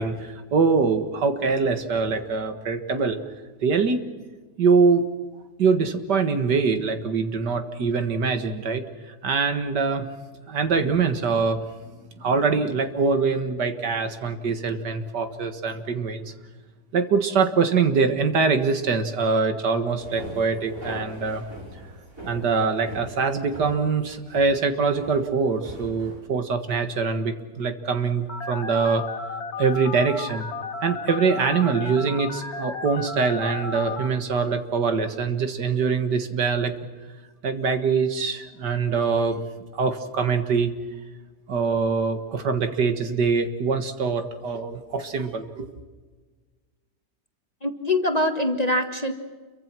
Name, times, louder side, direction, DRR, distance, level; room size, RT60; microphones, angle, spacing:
voice 1, 0.0-3.2 3.6-4.0 4.6-5.0 5.6-10.1 10.5-11.7 12.2-16.3 16.9-21.5 22.2-29.0 29.6-30.5 30.8-36.7 37.4-39.4 39.7-40.7 41.5-45.7, right 5 dB, 75° right, 8 dB, 2.3 m, -23 dB
sound 1, 20.0-26.2, right 1 dB, 50° right, 5.7 m, -41 dB
Telephone, 28.3-34.1, left 5 dB, 60° left, 2.3 m, -34 dB
voice 2, 47.6-49.1, left 1 dB, 25° left, 6 dB, 1.6 m, -23 dB
29.0 x 23.5 x 6.1 m, 1.4 s
omnidirectional pair, 1.8 m